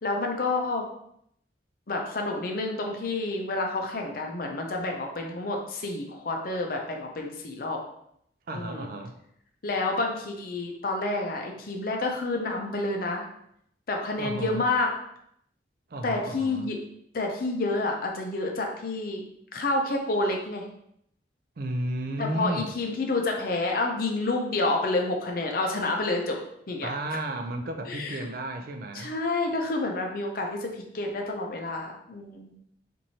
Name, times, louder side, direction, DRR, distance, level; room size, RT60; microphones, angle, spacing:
voice 1, 0.0-0.8 1.9-7.8 8.5-8.9 9.6-13.3 13.9-14.9 16.0-16.8 17.1-19.2 19.5-20.7 22.2-26.4 26.7-26.9 27.9-28.3 28.9-32.5, left 2 dB, 50° left, 2 dB, 0.5 m, -29 dB
voice 2, 8.5-9.2 14.2-14.7 15.9-16.7 21.6-22.7 26.8-29.1, right 1 dB, 50° right, 5 dB, 0.4 m, -33 dB
3.0 x 2.6 x 4.1 m, 0.72 s
head